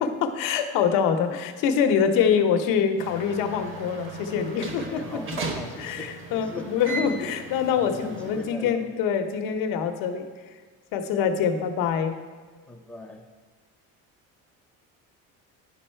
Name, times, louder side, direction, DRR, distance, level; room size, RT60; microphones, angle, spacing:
voice 1, 0.0-5.2 5.8-10.3 10.9-12.2, left 7 dB, 70° left, 7 dB, 0.9 m, -25 dB
sound 1, 3.0-8.5, right 3 dB, 35° right, 0.9 m, -37 dB
voice 2, 4.9-6.7 7.7-8.9 12.7-13.2, left 2 dB, 5° left, 0 dB, 0.7 m, -40 dB
10.5 x 5.5 x 4.4 m, 1.5 s
cardioid pair, 175°, 34 cm